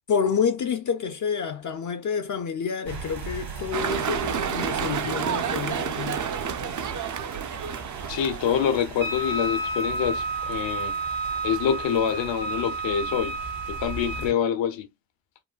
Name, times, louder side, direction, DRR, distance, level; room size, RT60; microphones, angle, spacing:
voice 1, 0.1-6.2 14.2-14.4, left 6 dB, 45° left, 0.5 m, -28 dB
sound 1, 2.9-14.3, right 4 dB, 60° right, 1.3 m, -39 dB
sound 2, 3.7-8.8, right 8 dB, 45° right, 0.6 m, -30 dB
voice 2, 8.1-11.0 11.4-13.4 13.7-14.9, left 8 dB, 75° left, 0.9 m, -26 dB
Wind instrument woodwind instrument, 9.0-14.4, right 2 dB, 80° right, 1.1 m, -31 dB
3.8 x 2.2 x 2.3 m
supercardioid pair, 50°, 45 cm